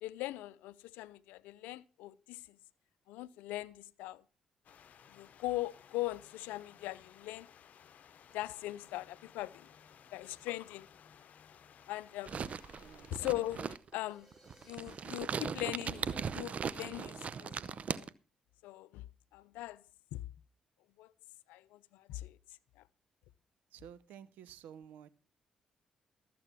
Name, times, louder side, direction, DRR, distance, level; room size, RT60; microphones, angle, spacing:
voice 1, 0.0-2.6 3.1-4.2 5.1-7.5 8.3-9.7 10.1-10.9 11.9-12.3 13.1-13.6 13.9-14.3 14.7-18.1 18.6-19.1 19.3-19.8 20.1-20.2 21.0-21.1 21.5-22.4, left 17 dB, 80° left, 0.5 m, -40 dB
sound 1, 4.6-13.8, left 8 dB, 60° left, 0.9 m, -59 dB
sound 2, 12.3-18.1, right 6 dB, 50° right, 0.7 m, -39 dB
voice 2, 12.8-13.1 23.7-25.1, right 9 dB, 75° right, 0.8 m, -52 dB
sound 3, 13.7-17.0, equal, 10° right, 5.1 m, -67 dB
13.5 x 7.7 x 5.8 m
hypercardioid pair, 45°, 3 cm